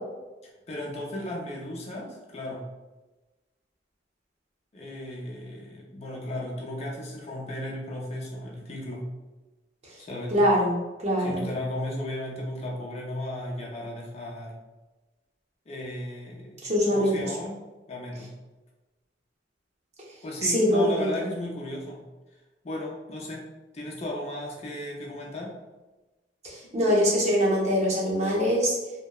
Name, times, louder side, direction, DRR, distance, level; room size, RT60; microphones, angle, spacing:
voice 1, 0.7-2.6 4.7-9.0 10.0-10.4 11.2-14.5 15.7-17.5 17.9-18.3 20.2-22.0 22.6-23.5 23.7-25.6, left 1 dB, 40° left, -2 dB, 0.4 m, -35 dB
voice 2, 10.3-10.8 11.0-11.4 16.6-17.1 20.4-21.1 26.4-28.7, equal, 40° right, -5 dB, 0.7 m, -23 dB
2.7 x 2.0 x 2.2 m, 1.1 s
head